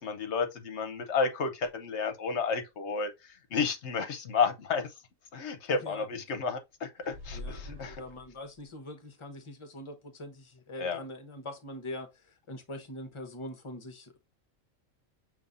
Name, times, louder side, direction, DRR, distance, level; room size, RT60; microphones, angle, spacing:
voice 1, 0.0-4.9 5.3-8.0 10.8-11.0, left 5 dB, 60° left, 1.0 m, -31 dB
voice 2, 5.7-6.2 7.3-14.2, left 1 dB, 25° left, 0.9 m, -43 dB
sound 1, 7.0-8.6, left 2 dB, 60° right, 1.2 m, -44 dB
6.8 x 2.9 x 2.5 m
omnidirectional pair, 1.4 m